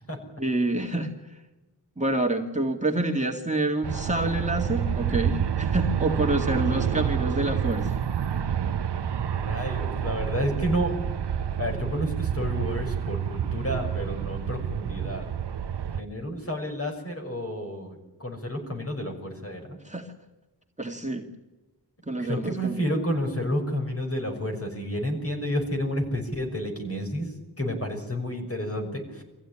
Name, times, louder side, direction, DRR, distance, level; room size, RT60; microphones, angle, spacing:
voice 1, 0.4-1.4 2.0-8.0 19.8-20.1 20.8-21.3 22.1-22.9, right 2 dB, 15° right, 1 dB, 2.1 m, -27 dB
Aircraft, 3.8-16.0, right 8 dB, 85° right, 0.9 m, -28 dB
voice 2, 9.3-10.9 11.6-15.3 16.0-19.8 22.2-27.3 27.6-29.2, equal, 35° left, 2 dB, 6.1 m, -30 dB
24.0 x 15.5 x 9.9 m, 1.1 s
wide cardioid pair, 80°, 40 cm